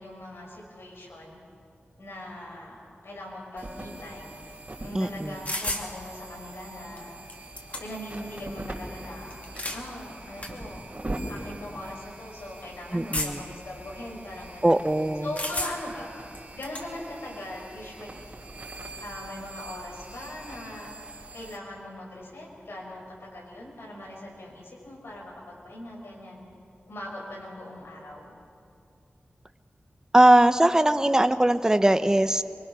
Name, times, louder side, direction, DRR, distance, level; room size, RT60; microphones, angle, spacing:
voice 1, 0.0-1.4 2.0-4.3 4.8-7.1 7.8-10.8 11.3-14.8 15.2-16.1 16.5-18.4 19.0-20.9 21.3-26.5 26.9-28.3, left 1 dB, 90° left, -2 dB, 5.8 m, -40 dB
sound 1, 3.6-21.6, right 1 dB, 35° right, 3.3 m, -42 dB
voice 2, 4.9-5.4 12.9-13.4 14.6-15.3 30.1-32.4, right 1 dB, 15° right, 10 dB, 0.8 m, -20 dB
sound 2, 5.5-5.9 7.0-7.1 7.3-8.1 9.3-9.8 10.4-10.5 11.4-11.5 13.1-13.6 15.4-16.0 16.3-16.9, left 1 dB, 40° left, 2.3 m, -32 dB
24.5 x 24.0 x 6.2 m, 2.5 s
wide cardioid pair, 85°, 4 cm